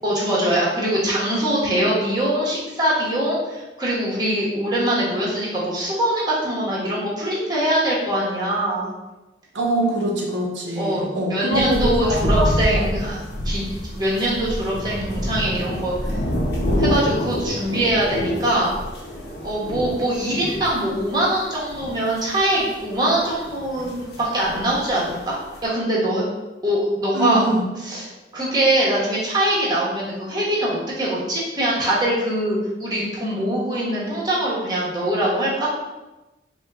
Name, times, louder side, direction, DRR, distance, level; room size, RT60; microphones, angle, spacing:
voice 1, 0.0-8.9 10.8-13.2 13.4-16.2 16.8-18.7 19.4-25.3 25.6-26.2 26.6-27.4 27.8-28.1 28.3-35.7, right 1 dB, 25° right, -6 dB, 1.0 m, -23 dB
voice 2, 9.5-13.0 27.1-27.6, right 1 dB, 90° right, -1 dB, 0.7 m, -23 dB
sound 1, 11.5-25.2 25.5-25.6, equal, 60° left, 0.8 m, -27 dB
4.4 x 2.3 x 3.4 m, 1.1 s
head